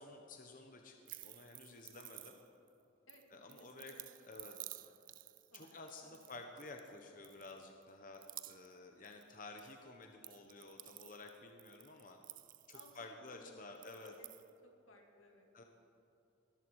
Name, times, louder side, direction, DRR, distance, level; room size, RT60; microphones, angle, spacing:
voice 1, 0.0-2.4 3.3-3.9 4.3-4.5 5.5-12.2 12.7-14.1 15.5-15.6, left 3 dB, 45° left, 4 dB, 1.0 m, -52 dB
sound 1, 1.0-2.7 3.1-6.9 7.2-7.8 8.1-8.8 9.0-9.7 10.0-13.3 13.7-14.5, right 16 dB, 45° right, 0.4 m, -53 dB
voice 2, 3.1-5.0 5.5-6.2 6.9-7.0 12.7-14.3 14.6-15.5, left 1 dB, 90° left, 2 dB, 2.6 m, -62 dB
20.5 x 13.5 x 4.8 m, 2.9 s
head